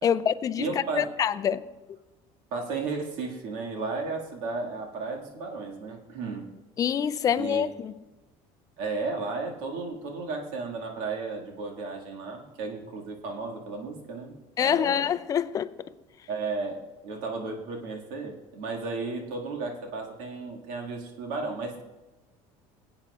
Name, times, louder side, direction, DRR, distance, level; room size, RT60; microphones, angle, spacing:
voice 1, 0.0-0.7 1.0-1.6 6.8-7.9 14.6-15.7, left 8 dB, 25° left, 0.4 m, -25 dB
voice 2, 0.6-1.1 2.5-6.5 7.4-7.7 8.8-15.1 16.3-21.8, right 3 dB, 75° right, 1.9 m, -34 dB
21.5 x 8.7 x 2.4 m
cardioid pair, 145°, 13 cm